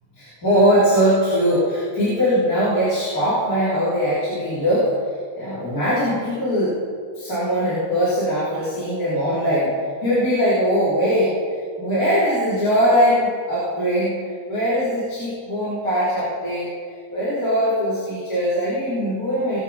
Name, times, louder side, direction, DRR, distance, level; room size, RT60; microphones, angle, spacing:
voice 1, 0.2-4.9 5.3-6.7 7.1-9.7 10.0-16.7 17.1-19.6, equal, 25° left, -13 dB, 4.2 m, -21 dB
20.0 x 9.2 x 4.4 m, 2.1 s
omnidirectional pair, 3.7 m